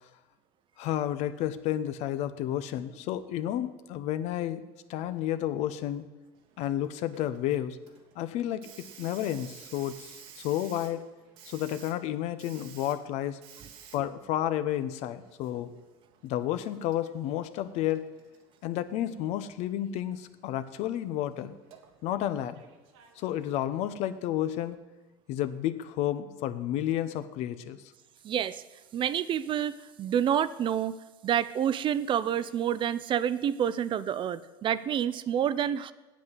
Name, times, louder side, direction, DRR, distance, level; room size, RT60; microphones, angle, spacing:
voice 1, 0.8-4.6 4.9-6.1 6.6-7.8 8.2-10.1 10.4-11.0 11.5-13.4 13.9-15.7 16.2-18.1 18.6-21.6 22.0-22.6 23.2-24.8 25.3-27.8, left 12 dB, 65° left, 12 dB, 0.8 m, -31 dB
Hiss, 6.4-24.8, right 8 dB, 80° right, 1.5 m, -55 dB
voice 2, 28.2-28.6 28.9-31.0 31.2-35.9, right 9 dB, 40° right, 16 dB, 0.5 m, -28 dB
8.4 x 8.0 x 7.6 m, 1.1 s
supercardioid pair, 85°, 12 cm